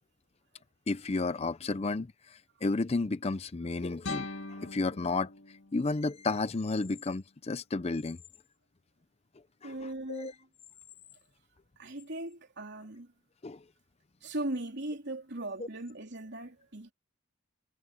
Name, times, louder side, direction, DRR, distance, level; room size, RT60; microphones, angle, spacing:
voice 1, 0.9-5.3 5.7-8.2 9.6-10.3 13.4-13.6 15.6-15.7, left 3 dB, 30° left, 0.5 m, -32 dB
sound 1, 4.0-7.0, left 3 dB, 60° left, 2.1 m, -43 dB
voice 2, 9.6-10.3 11.8-13.1 14.2-16.9, right 1 dB, 55° right, 3.6 m, -38 dB
head